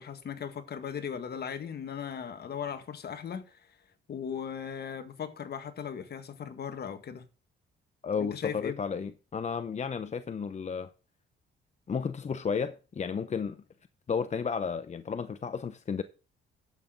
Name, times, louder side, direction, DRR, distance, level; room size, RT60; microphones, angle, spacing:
voice 1, 0.0-3.6 4.1-7.2 8.2-8.8, left 7 dB, 55° left, 1.8 m, -38 dB
voice 2, 8.0-10.9 11.9-13.6 14.1-16.0, left 6 dB, 35° left, 0.8 m, -33 dB
11.0 x 8.0 x 3.9 m
cardioid pair, 90°, 20 cm